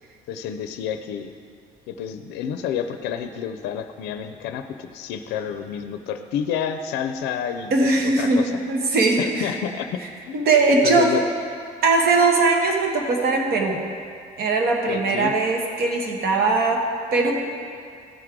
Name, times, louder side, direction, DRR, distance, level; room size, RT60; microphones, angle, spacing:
voice 1, 0.3-1.3 1.9-8.5 9.2-10.0 10.3-10.4 10.8-11.2 14.9-15.3, left 8 dB, 85° left, 8 dB, 0.4 m, -29 dB
voice 2, 7.7-9.5 10.3-11.1 11.8-13.8 14.4-17.3, right 3 dB, 65° right, 1 dB, 1.2 m, -20 dB
13.5 x 4.6 x 3.7 m, 2.3 s
cardioid pair, 110°, 17 cm